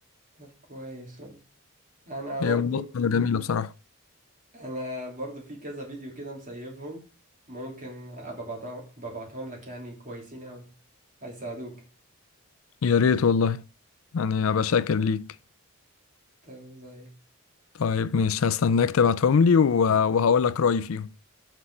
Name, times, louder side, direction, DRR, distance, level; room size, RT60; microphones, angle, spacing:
voice 1, 0.4-1.4 2.0-2.8 4.5-7.0 7.5-10.7 11.2-11.8 16.4-17.1, right 1 dB, 40° right, 3.1 m, -38 dB
voice 2, 2.4-3.7 12.8-13.6 14.1-15.3 17.8-21.1, left 6 dB, 75° left, 0.4 m, -22 dB
6.0 x 5.7 x 6.3 m
head